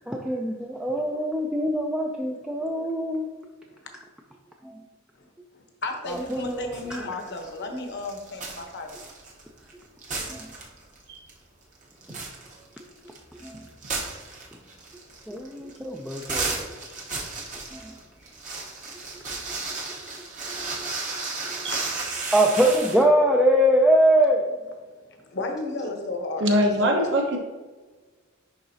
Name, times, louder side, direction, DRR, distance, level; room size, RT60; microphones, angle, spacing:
voice 1, 0.1-3.3 6.3-6.6 6.9-7.0 10.3-10.4 13.4-13.5 15.3-16.6 17.7-17.8 20.5-20.9 21.5-21.6 22.3-24.4, equal, 5° right, -1 dB, 0.4 m, -22 dB
voice 2, 5.5-9.0 25.2-27.1, left 2 dB, 55° left, 4 dB, 0.9 m, -33 dB
sound 1, 6.1-7.0 7.3-9.7 10.0-11.0 11.3-11.4 11.8-23.0, right 3 dB, 40° right, 0.9 m, -34 dB
voice 3, 26.4-27.4, equal, 60° right, 1 dB, 1.1 m, -22 dB
10.5 x 3.8 x 2.7 m, 1.3 s
head